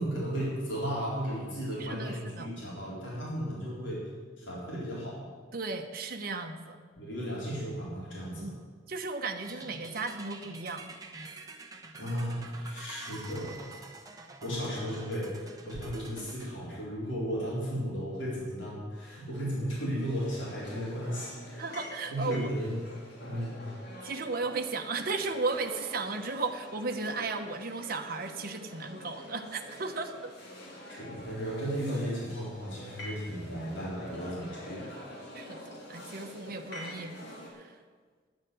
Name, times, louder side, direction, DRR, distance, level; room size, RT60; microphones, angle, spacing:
voice 1, 0.0-4.1 4.4-5.2 7.0-8.5 12.0-13.9 14.4-21.7 22.1-22.8 23.3-23.6 30.9-34.9, equal, 75° left, -6 dB, 4.0 m, -35 dB
voice 2, 1.8-2.5 5.5-6.8 8.4-8.5 8.9-10.9 21.6-22.5 24.0-30.3 35.3-37.2 37.5-37.7, right 3 dB, 55° right, 4 dB, 1.0 m, -35 dB
sound 1, 9.4-16.5, right 3 dB, 20° right, 1.1 m, -47 dB
sound 2, 20.0-37.5, equal, 60° left, 3.4 m, -46 dB
10.5 x 7.4 x 9.2 m, 1.5 s
head